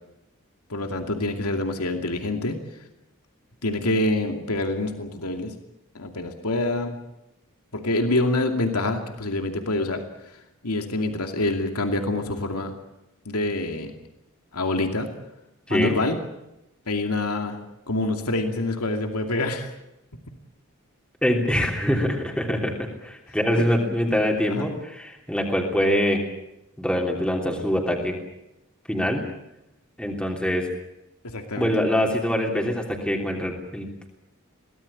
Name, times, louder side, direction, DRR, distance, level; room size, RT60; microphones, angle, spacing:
voice 1, 0.7-2.6 3.6-5.5 5.9-7.0 7.7-10.0 10.6-12.7 13.3-13.9 14.5-15.1 15.7-16.2 16.9-17.6 17.9-19.7 23.6-23.7 24.5-24.7 31.2-31.7, left 2 dB, 85° left, 5 dB, 2.5 m, -26 dB
voice 2, 21.2-26.2 26.8-28.2 28.9-29.2 30.0-30.7 31.6-34.1, equal, 5° left, 0 dB, 3.2 m, -24 dB
23.5 x 18.0 x 8.5 m, 0.90 s
head